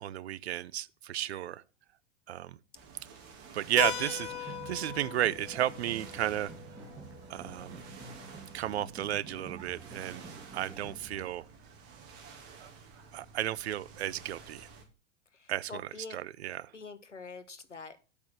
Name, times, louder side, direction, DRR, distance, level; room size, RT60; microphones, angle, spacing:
voice 1, 0.0-1.6 2.3-2.6 3.5-6.5 7.3-7.8 8.5-10.2 10.5-11.5 12.6-12.7 13.1-14.7 15.5-16.7, right 12 dB, 65° right, 0.6 m, -33 dB
sound 1, 2.7-14.8, right 5 dB, 40° right, 3.1 m, -52 dB
Keyboard (musical), 3.8-8.2, left 10 dB, 70° left, 1.7 m, -40 dB
sound 2, 4.2-11.3, right 3 dB, 10° right, 2.6 m, -49 dB
voice 2, 15.4-16.2 16.7-18.0, left 4 dB, 85° left, 1.2 m, -45 dB
8.5 x 6.2 x 6.1 m
figure-of-eight pair, 90°, 35 cm